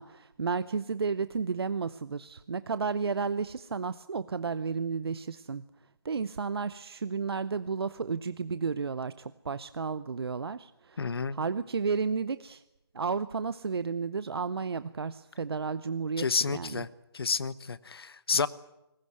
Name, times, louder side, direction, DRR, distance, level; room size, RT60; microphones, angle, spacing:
voice 1, 0.0-5.6 6.0-12.6 12.9-16.8, right 5 dB, 65° right, 15 dB, 0.8 m, -32 dB
voice 2, 11.0-11.4 16.2-16.9 17.1-18.5, left 5 dB, 65° left, 18 dB, 1.1 m, -30 dB
22.0 x 19.5 x 9.4 m, 0.92 s
figure-of-eight pair, 150°, 14 cm